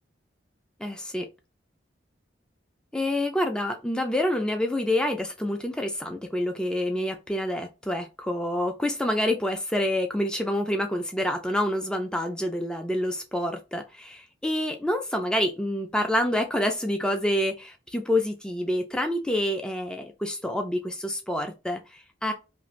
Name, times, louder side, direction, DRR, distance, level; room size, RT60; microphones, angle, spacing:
voice 1, 0.8-1.3 2.9-22.3, left 1 dB, 5° left, 0.4 m, -27 dB
2.8 x 2.6 x 3.0 m
head